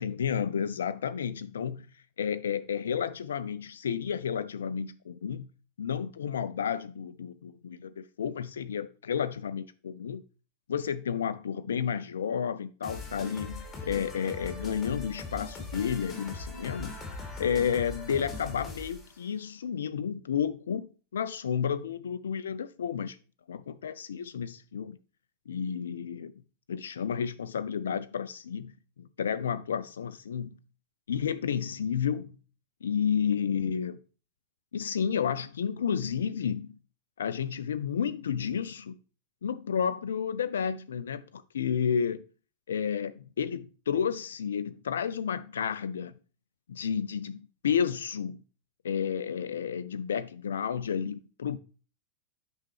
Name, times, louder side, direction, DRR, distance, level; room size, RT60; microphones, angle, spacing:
voice 1, 0.0-1.9 2.2-5.5 5.8-10.2 10.7-16.9 17.4-23.2 23.5-25.0 25.5-26.3 26.7-28.7 29.0-30.6 31.1-32.4 32.8-34.0 34.7-36.8 37.2-38.9 39.4-42.2 42.7-46.1 46.7-48.4 48.8-51.6, left 7 dB, 65° left, 0.4 m, -31 dB
sound 1, 12.8-19.1, left 3 dB, 10° left, 2.6 m, -40 dB
9.0 x 5.3 x 3.3 m
figure-of-eight pair, 90°, 0 cm